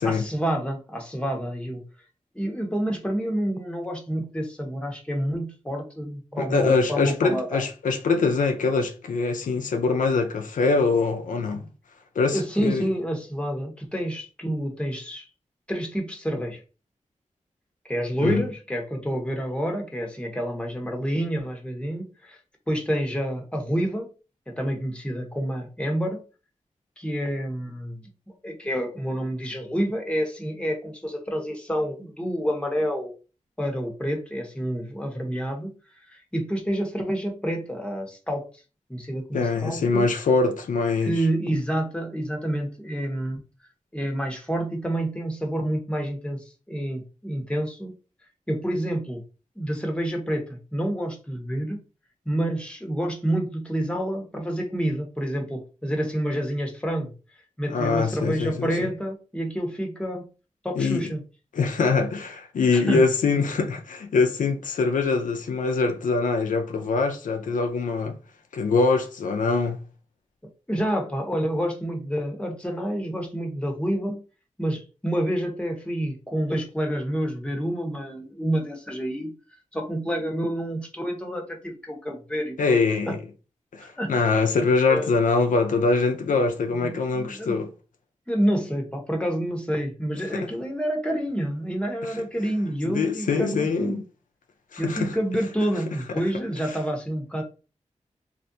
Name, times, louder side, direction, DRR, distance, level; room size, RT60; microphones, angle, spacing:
voice 1, 0.0-1.8 2.3-7.6 12.3-15.3 15.7-16.6 17.8-22.4 22.7-24.1 24.5-26.2 27.0-33.1 33.6-35.7 36.1-38.4 38.9-40.1 41.0-43.4 43.9-47.9 48.5-49.2 49.6-51.8 52.2-57.1 57.6-60.3 60.6-61.2 62.7-63.0 70.7-74.2 74.6-79.3 79.7-82.8 83.1-83.2 83.8-84.4 84.9-85.1 86.8-87.6 88.3-94.0 94.8-97.4, equal, 10° left, 1.0 m, -28 dB
voice 2, 6.4-11.7 12.2-12.9 18.2-18.5 39.3-41.2 57.7-58.9 60.8-61.0 61.5-68.2 68.5-69.8 82.6-83.2 83.7-87.7 90.3-90.5 92.1-92.2 92.8-94.0 94.7-95.2 96.1-96.2, left 4 dB, 90° left, 0.4 m, -23 dB
3.2 x 2.5 x 2.7 m
cardioid pair, 45°, 13 cm